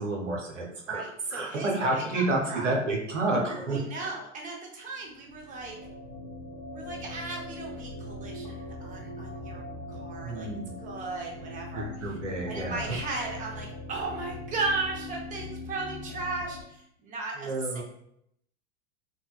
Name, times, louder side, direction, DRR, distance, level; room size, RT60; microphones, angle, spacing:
voice 1, 0.0-1.0 1.3-4.1 10.2-10.7 11.7-12.9 17.4-17.8, right 2 dB, 90° right, -1 dB, 0.9 m, -30 dB
voice 2, 0.9-2.2 2.5-2.7 3.7-5.8 6.7-9.6 9.9-10.5 10.8-12.2 12.5-17.8, right 3 dB, 20° right, 0 dB, 0.7 m, -36 dB
sound 1, 5.1-16.6, left 2 dB, 50° left, 0.8 m, -41 dB
3.9 x 2.2 x 2.3 m, 0.73 s
hypercardioid pair, 95°, 36 cm